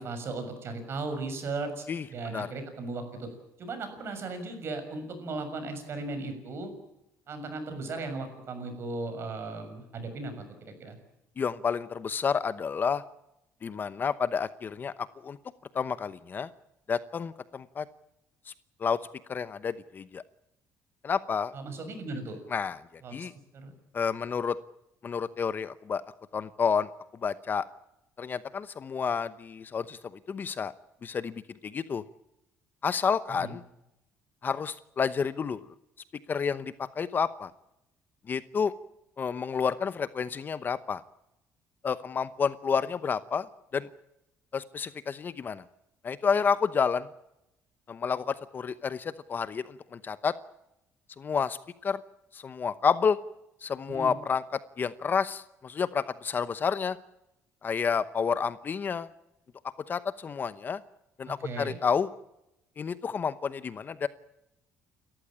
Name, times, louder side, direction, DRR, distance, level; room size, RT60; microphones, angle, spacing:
voice 1, 0.0-3.3 3.6-6.7 7.3-10.3 10.6-11.0 21.5-22.4 23.0-23.1 23.5-23.7 33.4-33.5 53.9-54.1 61.3-61.8, right 3 dB, 45° right, 8 dB, 6.6 m, -36 dB
voice 2, 11.4-13.0 13.6-14.9 15.2-15.4 15.7-16.5 16.9-17.8 18.8-19.0 19.3-20.2 21.0-21.5 22.5-22.8 23.1-23.3 23.9-24.6 25.0-26.0 26.3-26.9 27.2-27.6 28.2-30.0 30.3-30.7 31.0-32.0 32.8-33.6 34.4-35.7 36.3-37.5 38.3-38.7 39.2-41.0 41.8-43.5 43.7-43.9 44.5-45.6 46.0-47.1 47.9-50.3 51.2-51.6 51.8-52.0 52.3-53.2 53.6-54.4 54.8-57.0 57.6-59.1 59.9-60.8 61.2-62.1 62.8-64.1, left 6 dB, 35° left, 14 dB, 0.9 m, -30 dB
30.0 x 14.0 x 8.7 m, 0.88 s
cardioid pair, 130°, 6 cm